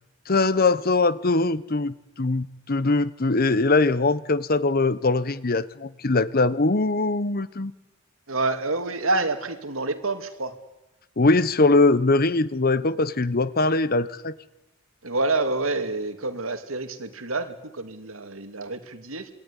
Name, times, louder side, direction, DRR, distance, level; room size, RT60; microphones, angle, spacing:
voice 1, 0.3-7.7 11.2-14.3, left 3 dB, 45° left, 1.0 m, -22 dB
voice 2, 8.3-10.6 15.0-19.3, right 2 dB, 80° right, 2.6 m, -28 dB
27.5 x 21.0 x 9.9 m
head